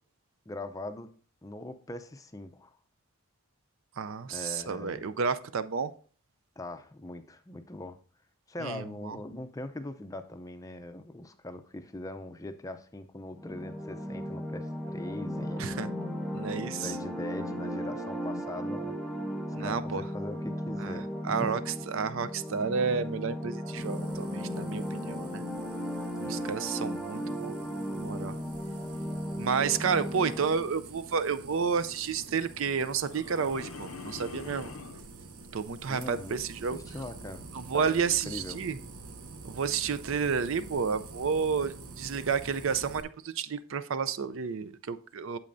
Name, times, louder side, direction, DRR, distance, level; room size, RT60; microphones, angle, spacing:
voice 1, 0.5-1.1 1.4-2.7 4.3-5.0 6.6-8.0 8.5-15.7 16.8-19.0 19.6-21.5 26.2-26.5 35.9-36.4 36.7-37.4 37.7-38.6, left 1 dB, 15° left, 0.5 m, -41 dB
voice 2, 4.0-5.9 8.6-9.2 15.6-15.9 16.3-17.0 19.5-20.0 20.8-21.0 21.2-25.4 26.3-27.5 27.9-28.4 29.4-34.7 35.5-36.8 37.5-38.8 39.4-45.4, right 6 dB, 65° right, 0.5 m, -31 dB
sound 1, 13.4-30.7, equal, ahead, 0.8 m, -36 dB
sound 2, 23.8-43.0, right 3 dB, 85° right, 1.1 m, -47 dB
sound 3, 33.0-35.1, left 4 dB, 75° left, 0.6 m, -43 dB
8.7 x 7.6 x 2.6 m
head